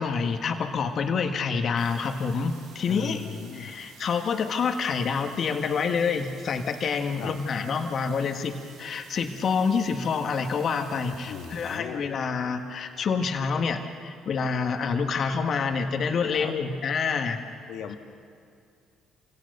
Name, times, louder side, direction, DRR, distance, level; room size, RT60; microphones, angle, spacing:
voice 1, 0.0-3.3 3.5-17.4, left 5 dB, 55° left, 5 dB, 1.8 m, -27 dB
sound 1, 1.8-11.8, right 4 dB, 80° right, 4.2 m, -52 dB
voice 2, 2.9-3.8 7.2-7.4 11.1-12.1 16.3-16.5 17.7-18.0, left 7 dB, 70° left, 5 dB, 1.8 m, -37 dB
27.5 x 17.5 x 6.7 m, 2.3 s
supercardioid pair, 70°, 0 cm